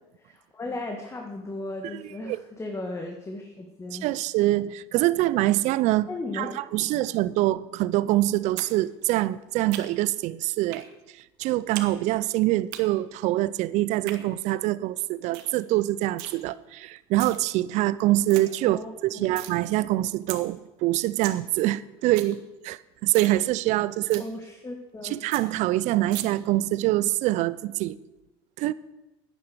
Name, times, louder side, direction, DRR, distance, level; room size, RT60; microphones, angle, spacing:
voice 1, 0.2-4.1 6.1-6.6 18.6-19.3 24.2-25.2, left 2 dB, 20° left, 1.7 m, -36 dB
voice 2, 3.9-6.1 6.3-10.8 11.4-24.2 25.0-28.0 28.6-28.7, right 16 dB, 65° right, 0.6 m, -25 dB
sound 1, 8.6-8.7 9.0-10.1 10.7-10.9 11.2-11.9 12.2-12.8 13.8-14.2 14.6-14.7 15.0-15.1 15.3-15.5 15.8-16.3 17.0-17.4 17.8-17.9 18.1-18.4 18.8-19.5 19.9-20.0 20.3-20.4 20.8-20.9 21.1-21.4 21.7-21.8 22.0-22.3 22.7-22.8 23.1-23.4 23.7-23.8 24.1-24.3 24.7-24.8 25.0-25.1 25.3-25.4 26.1-26.2, right 14 dB, 80° right, 1.2 m, -37 dB
10.5 x 10.0 x 6.9 m
supercardioid pair, 95°, 13 cm